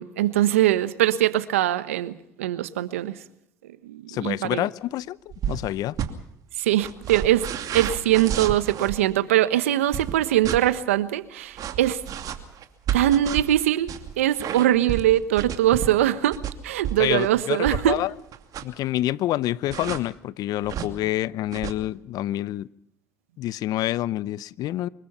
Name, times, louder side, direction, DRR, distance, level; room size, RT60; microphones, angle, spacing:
voice 1, 0.0-3.2 3.8-4.7 6.6-7.5 7.7-12.0 12.9-16.4 16.6-18.0, right 13 dB, 90° right, 1.2 m, -22 dB
voice 2, 4.1-5.2 5.5-6.0 17.0-18.1 18.6-22.7 23.4-24.9, left 14 dB, 65° left, 0.8 m, -27 dB
sound 1, 5.3-5.7 5.9-6.1 6.8-9.0 9.9-10.6 11.6-18.0 18.3-18.8 19.7-20.0 20.6-20.9 21.5-21.7, right 9 dB, 60° right, 2.6 m, -31 dB
25.0 x 22.0 x 5.7 m
hypercardioid pair, 65°, 7 cm